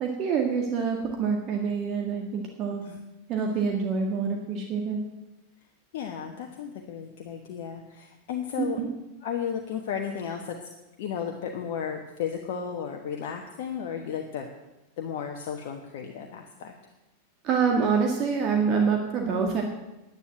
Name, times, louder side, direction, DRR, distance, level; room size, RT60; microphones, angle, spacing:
voice 1, 0.0-2.8 3.3-5.0 8.6-8.9 17.4-19.6, right 5 dB, 35° right, 2 dB, 1.8 m, -26 dB
voice 2, 5.9-8.8 9.2-10.6 11.0-14.5 15.0-16.7, left 8 dB, 50° left, 3 dB, 1.2 m, -34 dB
10.5 x 10.0 x 7.8 m, 0.98 s
figure-of-eight pair, 90°, 0 cm